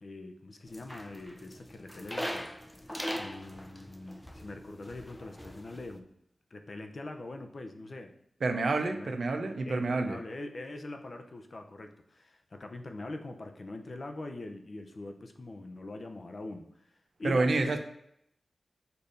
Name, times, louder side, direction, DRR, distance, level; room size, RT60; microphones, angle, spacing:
voice 1, 0.0-2.5 3.1-6.1 6.5-8.1 8.9-9.2 9.7-16.7 17.2-17.8, left 2 dB, 55° left, 5 dB, 0.7 m, -43 dB
sound 1, 0.7-6.0, equal, 10° left, 0.6 m, -41 dB
voice 2, 8.4-10.2 17.2-17.8, right 3 dB, 75° right, 6 dB, 0.7 m, -28 dB
6.8 x 2.7 x 5.1 m, 0.75 s
cardioid pair, 60°, 0 cm